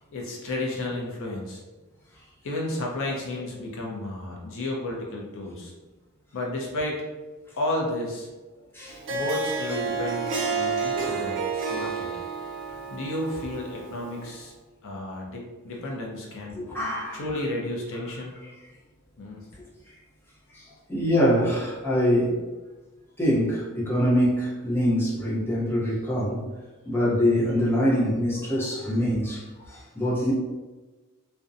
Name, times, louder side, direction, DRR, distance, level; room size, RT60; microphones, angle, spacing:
voice 1, 0.1-1.6 2.4-5.7 6.3-7.0 7.5-8.3 9.1-12.1 12.9-14.5 14.8-16.6 17.1-18.4 19.2-19.4, left 1 dB, 60° left, -2 dB, 0.5 m, -32 dB
Harp, 8.9-14.3, right 5 dB, 55° right, 0.4 m, -30 dB
voice 2, 10.9-11.4 11.7-11.9 16.5-17.2 20.5-22.4 23.2-26.4 26.9-30.3, equal, 10° left, -7 dB, 0.6 m, -24 dB
2.6 x 2.1 x 2.4 m, 1.2 s
head